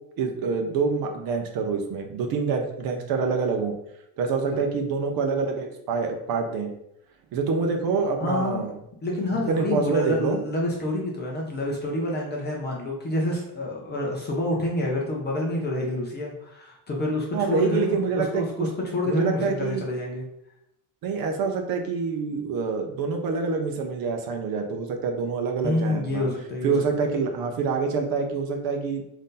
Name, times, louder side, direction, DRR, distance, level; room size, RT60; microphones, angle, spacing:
voice 1, 0.2-3.7 4.2-6.7 7.3-8.8 9.5-10.4 17.3-18.7 19.1-19.8 21.0-26.3 26.6-29.0, right 5 dB, 50° right, 4 dB, 0.5 m, -26 dB
voice 2, 8.2-8.6 9.0-20.2 25.6-26.7, left 2 dB, 20° left, -2 dB, 0.5 m, -28 dB
3.9 x 2.6 x 3.7 m, 0.80 s
cardioid pair, 165°, 49 cm